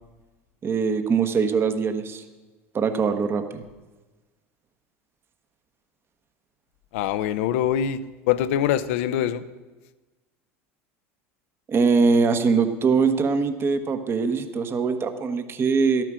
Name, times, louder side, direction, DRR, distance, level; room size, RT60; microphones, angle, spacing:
voice 1, 0.6-2.2 2.7-3.6 11.7-16.0, right 5 dB, 35° right, 8 dB, 1.1 m, -22 dB
voice 2, 6.9-8.0 8.3-9.4, left 10 dB, 75° left, 14 dB, 0.7 m, -23 dB
12.5 x 9.0 x 6.2 m, 1.2 s
hypercardioid pair, 95°, 7 cm